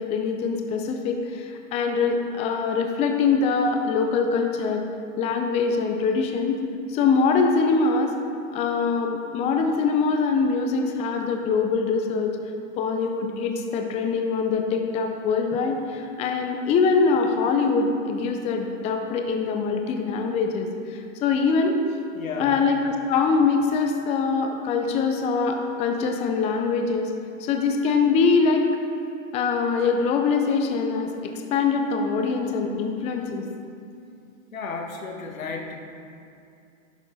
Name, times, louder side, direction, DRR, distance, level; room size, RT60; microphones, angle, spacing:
voice 1, 0.0-4.8 5.2-6.6 6.9-8.2 8.5-12.3 12.8-21.8 22.4-27.1 27.4-28.6 29.3-33.5, left 4 dB, 15° left, 4 dB, 0.5 m, -23 dB
voice 2, 22.1-22.6 34.5-35.8, left 4 dB, 85° left, 2 dB, 1.5 m, -33 dB
10.5 x 7.1 x 4.0 m, 2.6 s
hypercardioid pair, 130°, 40 cm